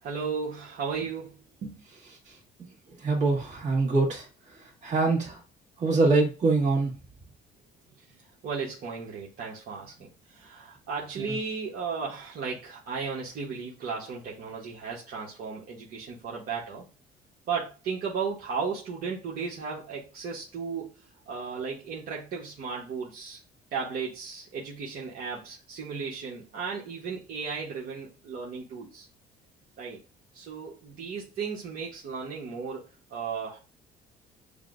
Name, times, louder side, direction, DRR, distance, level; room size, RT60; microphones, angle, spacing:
voice 1, 0.0-1.8 8.4-16.8 17.5-20.9 21.3-23.4 23.7-29.1 29.8-30.0 30.3-33.6, right 5 dB, 60° right, -5 dB, 1.3 m, -35 dB
voice 2, 3.0-4.2 4.8-5.4 5.8-6.9, right 3 dB, 45° right, -2 dB, 1.8 m, -23 dB
6.6 x 2.2 x 2.6 m, 0.31 s
cardioid pair, 110°, 17 cm